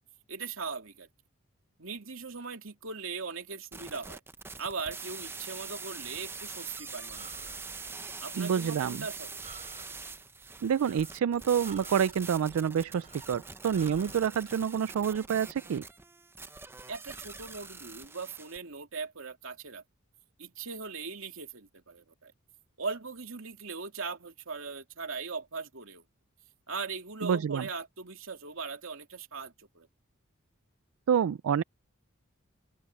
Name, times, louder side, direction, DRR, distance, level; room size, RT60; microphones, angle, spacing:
voice 1, 0.3-1.1 1.8-4.2 4.6-7.5 8.2-9.4 16.9-19.8 20.4-22.3 22.8-26.0 26.7-29.9, right 4 dB, 70° right, 2.7 m, -39 dB
sound 1, 3.7-18.6, right 4 dB, 10° right, 0.6 m, -44 dB
Breathing, 5.9-14.3, right 4 dB, 35° right, 4.6 m, -55 dB
voice 2, 8.4-9.0 10.6-15.8 27.2-27.7 31.1-31.6, right 7 dB, 90° right, 0.4 m, -28 dB
open air
head